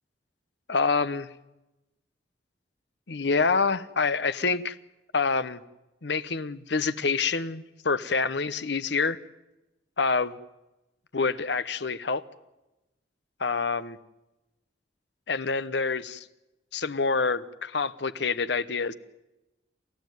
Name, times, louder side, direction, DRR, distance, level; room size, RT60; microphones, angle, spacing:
voice 1, 0.7-1.3 3.1-4.8 5.1-5.6 6.0-9.2 10.0-10.4 11.1-12.2 13.4-14.0 15.3-16.2 16.7-18.9, left 4 dB, 70° left, 15 dB, 1.0 m, -27 dB
28.5 x 14.0 x 9.3 m, 0.97 s
head